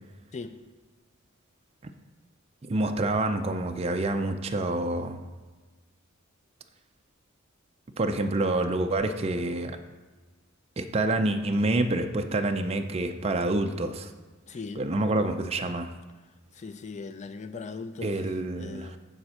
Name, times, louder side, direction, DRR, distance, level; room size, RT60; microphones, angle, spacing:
voice 1, 2.6-5.2 8.0-9.8 10.8-14.1 14.8-15.9 18.0-19.0, right 2 dB, 30° right, 6 dB, 0.5 m, -27 dB
voice 2, 14.5-14.9 16.5-18.2 18.6-19.0, left 4 dB, 35° left, 10 dB, 0.4 m, -39 dB
8.8 x 4.3 x 6.3 m, 1.3 s
head